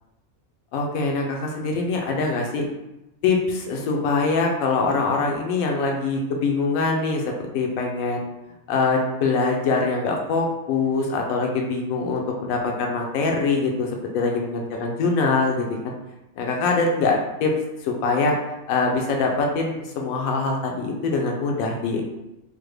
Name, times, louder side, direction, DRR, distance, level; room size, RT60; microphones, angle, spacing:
voice 1, 0.7-2.6 3.2-8.3 8.7-15.9 16.4-17.5 17.8-18.4 18.7-22.0, left 3 dB, 75° left, 1 dB, 1.0 m, -23 dB
3.4 x 2.1 x 3.2 m, 0.94 s
omnidirectional pair, 1.5 m